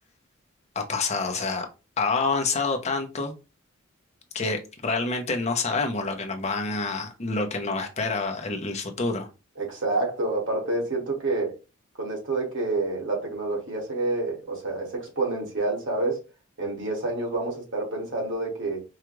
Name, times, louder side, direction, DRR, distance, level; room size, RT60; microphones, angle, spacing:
voice 1, 0.7-1.7 2.0-3.3 4.3-9.3, left 3 dB, 35° left, 0.7 m, -27 dB
voice 2, 9.6-11.6 12.0-16.2 16.6-18.8, right 2 dB, 60° right, 1.7 m, -28 dB
4.7 x 2.4 x 3.0 m
head